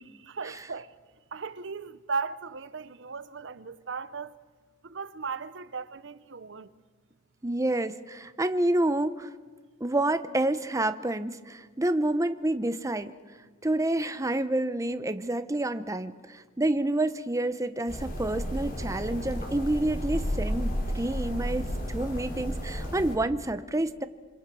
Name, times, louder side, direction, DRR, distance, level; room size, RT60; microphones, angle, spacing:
voice 1, 0.1-0.9 1.3-4.3 4.8-6.7, right 5 dB, 65° right, 0.8 m, -36 dB
voice 2, 7.4-9.3 9.8-13.1 13.6-24.0, right 1 dB, 15° right, 0.8 m, -28 dB
sound 1, 17.9-23.2, equal, 45° left, 4.3 m, -32 dB
26.5 x 25.5 x 6.2 m
head